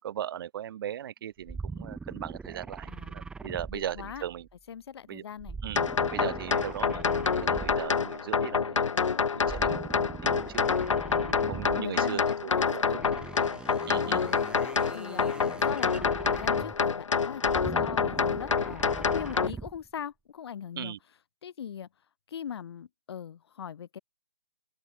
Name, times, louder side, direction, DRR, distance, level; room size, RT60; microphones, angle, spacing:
voice 1, 0.0-4.5 5.1-5.2 5.6-5.8 6.1-8.9 9.3-10.6 11.2-13.0 13.9-14.3 20.8-21.0, right 11 dB, 45° right, 6.0 m, -38 dB
sound 1, 1.5-4.5 5.4-8.1 9.4-12.0 12.9-16.9 17.4-19.9, right 4 dB, 5° right, 1.4 m, -42 dB
voice 2, 3.5-4.2 4.7-5.6 11.2-11.3 11.7-13.1 13.9-14.3 14.8-15.3 15.6-20.9 21.4-21.9 22.3-24.0, left 8 dB, 50° left, 5.0 m, -40 dB
sound 2, 5.8-19.5, left 5 dB, 65° left, 3.8 m, -27 dB
open air
figure-of-eight pair, 140°, 17 cm